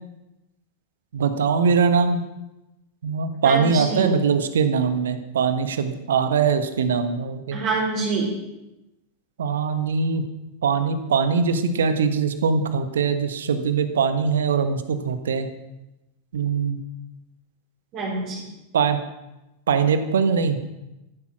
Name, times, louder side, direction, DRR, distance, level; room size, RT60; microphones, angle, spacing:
voice 1, 1.1-2.2 3.0-7.6 9.4-10.3 10.6-15.5 16.3-16.8 18.7-19.0 19.7-20.7, right 5 dB, 65° right, 9 dB, 1.5 m, -22 dB
voice 2, 3.4-4.1 7.5-8.3 17.9-18.4, right 3 dB, 35° right, -6 dB, 4.5 m, -26 dB
14.0 x 12.0 x 6.2 m, 0.97 s
figure-of-eight pair, 90°, 0 cm